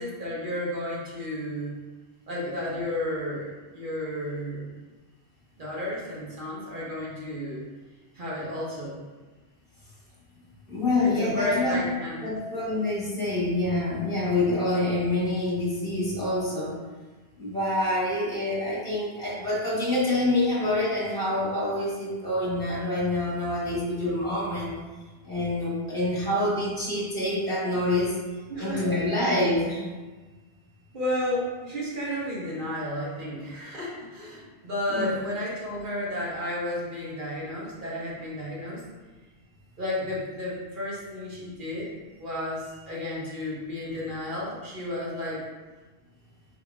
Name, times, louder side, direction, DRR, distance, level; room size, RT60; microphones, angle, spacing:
voice 1, 0.0-1.8 2.3-4.7 5.6-7.7 8.1-9.0 11.0-12.2 28.5-28.9 30.9-38.8 39.8-41.9 42.2-45.4, left 1 dB, 50° right, -6 dB, 1.2 m, -32 dB
voice 2, 10.7-11.8 12.2-16.8 17.4-24.7 25.2-28.2 28.6-29.9 34.9-35.1 43.2-43.3, left 1 dB, 5° left, -7 dB, 1.2 m, -26 dB
3.6 x 2.8 x 4.8 m, 1.3 s
omnidirectional pair, 1.1 m